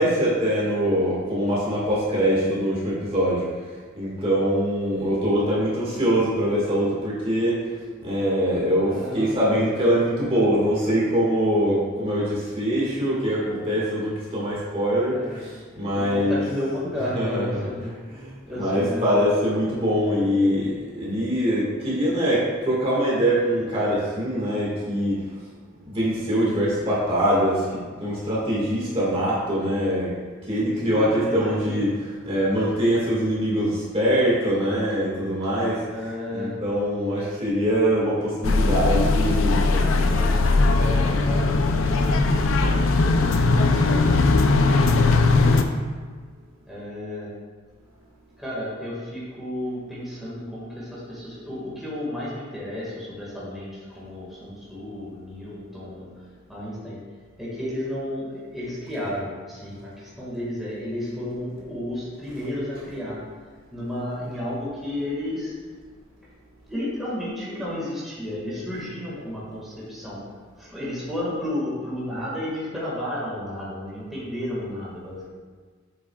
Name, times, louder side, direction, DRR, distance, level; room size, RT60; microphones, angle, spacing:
voice 1, 0.0-3.5 3.9-7.7 8.0-16.4 17.1-17.6 18.1-25.2 25.8-30.1 30.4-40.3, equal, 30° right, -7 dB, 1.7 m, -23 dB
voice 2, 8.8-9.5 15.1-15.4 15.9-17.9 18.5-19.0 30.8-31.8 35.9-36.5 39.8-45.5 46.6-47.3 48.4-56.1 56.5-57.0 57.4-63.2 63.7-65.5 66.7-70.2 70.6-75.3, left 1 dB, ahead, -9 dB, 1.8 m, -32 dB
sound 1, 38.4-45.6, left 3 dB, 85° left, 0.5 m, -19 dB
7.9 x 6.2 x 2.3 m, 1.5 s
head